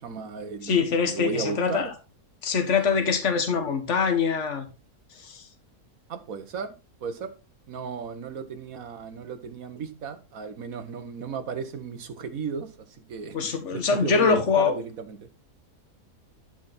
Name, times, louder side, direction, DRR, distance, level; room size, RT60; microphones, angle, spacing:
voice 1, 0.0-1.9 6.1-6.7 7.0-7.3 7.7-15.2, right 5 dB, 60° right, 1.6 m, -34 dB
voice 2, 0.6-1.9 2.4-4.7 5.2-5.5 13.3-14.8, left 5 dB, 50° left, 1.9 m, -24 dB
12.0 x 6.0 x 4.4 m
omnidirectional pair, 1.7 m